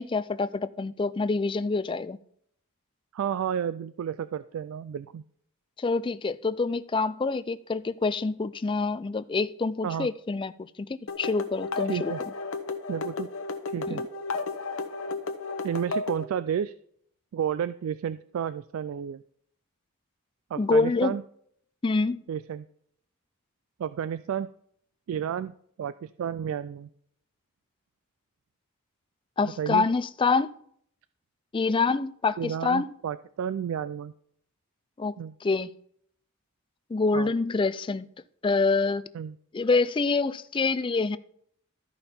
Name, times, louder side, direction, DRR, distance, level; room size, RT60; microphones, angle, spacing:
voice 1, 0.0-2.2 5.8-10.5 10.8-12.1 13.9-14.0 20.6-21.2 21.8-22.2 29.4-30.5 31.5-32.9 35.0-35.7 36.9-38.1 38.4-39.0 39.5-41.2, left 4 dB, 25° left, 0.3 m, -26 dB
voice 2, 3.1-5.2 9.8-10.1 11.9-12.2 12.9-13.3 13.7-14.0 15.6-16.7 17.3-19.2 20.5-21.2 22.3-22.7 23.8-24.5 25.1-26.9 29.4-29.9 32.4-34.1 35.2-35.3 37.1-37.3 39.1-39.3, right 8 dB, 70° right, 0.3 m, -31 dB
sound 1, 11.1-16.2, left 3 dB, 65° left, 0.9 m, -33 dB
13.0 x 5.3 x 4.3 m
head